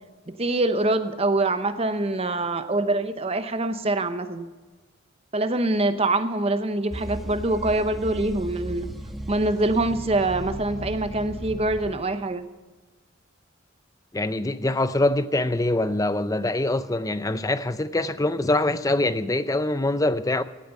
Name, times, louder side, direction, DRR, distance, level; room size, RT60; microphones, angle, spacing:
voice 1, 0.3-4.5 5.3-8.9 9.3-12.4, right 2 dB, 30° right, 0.8 m, -24 dB
sound 1, 6.9-11.9, equal, ahead, 1.2 m, -36 dB
voice 2, 14.1-20.4, left 2 dB, 15° left, 0.5 m, -24 dB
17.0 x 9.0 x 7.0 m
head